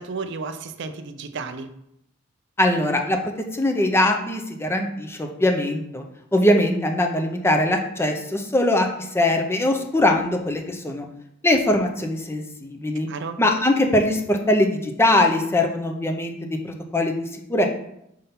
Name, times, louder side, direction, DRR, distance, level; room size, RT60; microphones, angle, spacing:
voice 1, 0.0-1.7 13.1-13.4, right 4 dB, 60° right, 9 dB, 0.5 m, -33 dB
voice 2, 2.6-6.0 6.3-8.9 9.1-11.1 11.4-13.1 13.4-17.2 17.5-17.7, left 1 dB, 10° left, 3 dB, 0.6 m, -21 dB
5.4 x 3.7 x 5.7 m, 0.79 s
head